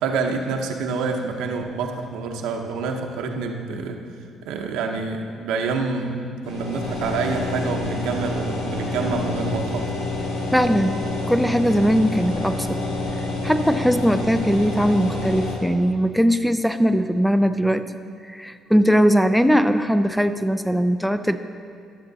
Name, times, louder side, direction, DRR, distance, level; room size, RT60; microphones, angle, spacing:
voice 1, 0.0-4.0 4.4-9.9, right 4 dB, 90° right, 3 dB, 0.8 m, -27 dB
sound 1, 6.4-15.6, left 2 dB, 90° left, 2.0 m, -28 dB
voice 2, 10.5-11.0 11.3-12.8 13.4-17.8 18.2-21.4, equal, ahead, 10 dB, 0.4 m, -20 dB
12.5 x 6.8 x 4.0 m, 2.2 s
cardioid pair, 100°, 0 cm